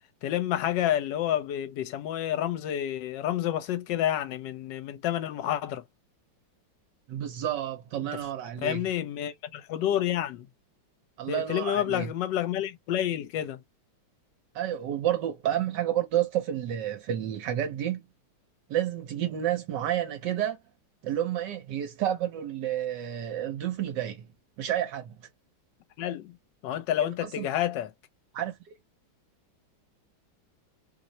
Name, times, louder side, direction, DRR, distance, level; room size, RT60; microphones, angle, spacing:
voice 1, 0.2-5.8 8.6-10.5 11.3-13.6 26.0-26.3 26.6-27.9, left 11 dB, 75° left, 1.3 m, -29 dB
voice 2, 7.1-8.8 11.2-12.1 14.5-18.0 18.7-20.6 21.0-24.3 24.6-25.2 27.2-27.5 28.3-28.6, right 11 dB, 70° right, 1.3 m, -30 dB
3.2 x 2.0 x 3.9 m
omnidirectional pair, 2.0 m